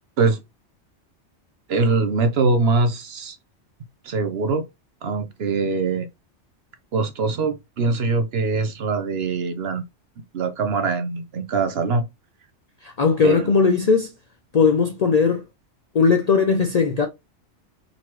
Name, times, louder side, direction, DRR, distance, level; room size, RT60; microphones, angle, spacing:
voice 1, 1.7-3.4 4.0-4.6 5.0-6.1 6.9-9.8 10.3-12.0 13.2-13.5, right 3 dB, 65° right, 1.0 m, -22 dB
voice 2, 12.8-14.1 14.5-15.4 15.9-17.1, left 5 dB, 55° left, 0.4 m, -18 dB
3.9 x 3.0 x 3.1 m
omnidirectional pair, 1.2 m